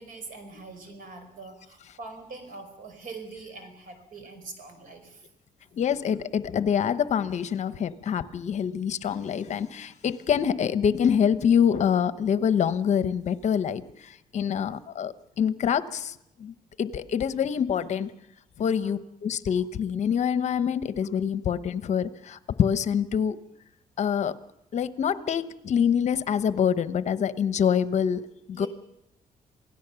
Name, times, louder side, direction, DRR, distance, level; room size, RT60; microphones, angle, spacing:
voice 1, 0.0-5.3 18.6-18.9 28.5-28.7, right 3 dB, 70° right, 8 dB, 5.0 m, -43 dB
voice 2, 5.8-18.1 18.6-23.4 24.0-24.4 24.7-28.2 28.5-28.7, left 8 dB, 50° left, 13 dB, 0.9 m, -26 dB
27.5 x 17.0 x 6.9 m, 0.83 s
cardioid pair, 135°, 15 cm